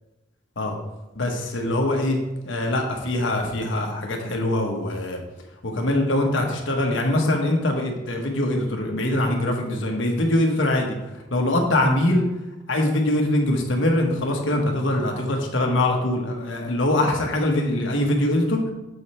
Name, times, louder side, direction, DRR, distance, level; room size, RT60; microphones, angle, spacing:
voice 1, 1.1-2.2 2.4-5.2 5.6-11.0 11.3-12.2 12.7-18.7, left 1 dB, 75° left, 1 dB, 1.2 m, -23 dB
7.0 x 5.1 x 4.3 m, 1.0 s
head